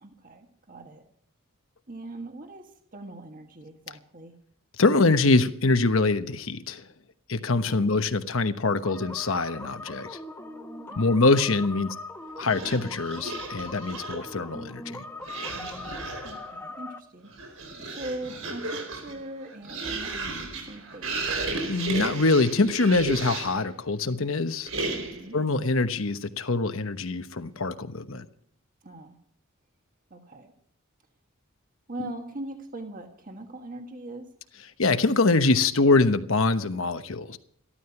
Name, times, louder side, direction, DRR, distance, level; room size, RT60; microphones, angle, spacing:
voice 1, 0.0-1.0 1.9-4.4 7.7-7.9 10.9-11.1 15.5-21.3 25.0-25.4 28.8-29.2 30.1-30.5 31.9-34.3, right 2 dB, 40° right, 1.6 m, -41 dB
voice 2, 4.8-6.8 7.3-10.2 11.0-11.9 12.4-15.0 21.7-24.7 25.3-28.3 34.8-37.4, left 3 dB, 65° left, 1.0 m, -24 dB
sound 1, 8.8-17.0, left 2 dB, 10° left, 1.2 m, -40 dB
sound 2, 12.4-14.3 15.2-16.5 17.2-23.7 24.7-25.3, right 3 dB, 75° right, 4.6 m, -34 dB
14.5 x 13.0 x 5.9 m
head